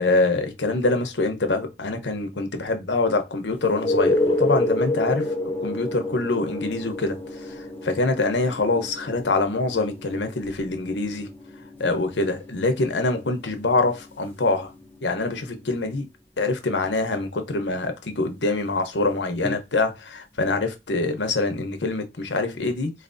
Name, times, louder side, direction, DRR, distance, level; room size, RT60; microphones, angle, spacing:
voice 1, 0.0-5.3 5.6-11.3 11.8-14.7 15.0-16.1 16.4-22.9, left 3 dB, 90° left, 0.9 m, -25 dB
sound 1, 3.6-15.2 19.4-19.5, left 1 dB, 10° left, 0.9 m, -29 dB
4.2 x 3.3 x 2.7 m
head